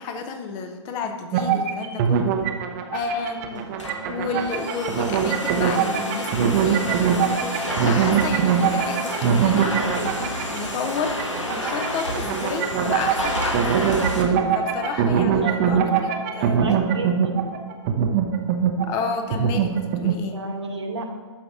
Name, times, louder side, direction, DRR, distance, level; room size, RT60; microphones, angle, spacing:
voice 1, 0.0-2.4 2.9-3.7 4.1-13.6 14.5-16.6 18.8-20.5, left 5 dB, 25° left, 7 dB, 0.7 m, -31 dB
sound 1, 1.3-20.2, right 7 dB, 35° right, 0.8 m, -23 dB
Domestic sounds home sounds, 3.5-14.2, equal, 90° left, 1.8 m, -30 dB
voice 2, 15.4-15.8 16.4-17.5 20.3-21.1, right 2 dB, 65° right, 2 dB, 1.5 m, -31 dB
11.5 x 5.9 x 3.7 m, 1.4 s
figure-of-eight pair, 120°, 16 cm